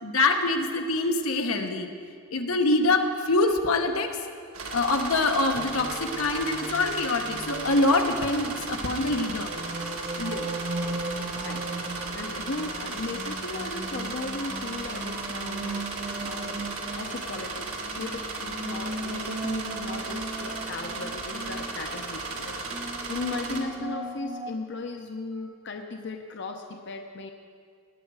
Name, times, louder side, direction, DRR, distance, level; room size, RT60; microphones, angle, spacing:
voice 1, 0.0-1.9 2.3-4.2 4.7-9.5, left 2 dB, 80° left, 4 dB, 1.0 m, -25 dB
sound 1, 4.5-23.6, right 3 dB, 80° right, 1.5 m, -35 dB
sound 2, 5.5-24.5, right 2 dB, 25° right, 0.5 m, -38 dB
voice 2, 10.2-10.6 11.4-16.7 17.0-27.3, left 3 dB, 55° left, 4 dB, 0.7 m, -37 dB
18.0 x 9.2 x 4.8 m, 2.2 s
head